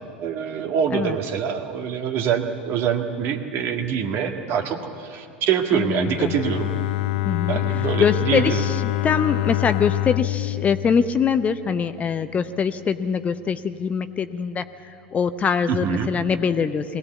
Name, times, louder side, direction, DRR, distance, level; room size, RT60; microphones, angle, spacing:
voice 1, 0.0-6.7 7.5-8.6 15.7-16.1, right 8 dB, 45° right, 4 dB, 1.8 m, -25 dB
voice 2, 5.7-6.3 7.2-7.6 8.0-17.0, left 6 dB, 25° left, 11 dB, 0.7 m, -23 dB
Bowed string instrument, 6.0-12.0, left 17 dB, 55° left, 0.4 m, -26 dB
21.5 x 17.5 x 8.3 m, 2.6 s
figure-of-eight pair, 85°, 6 cm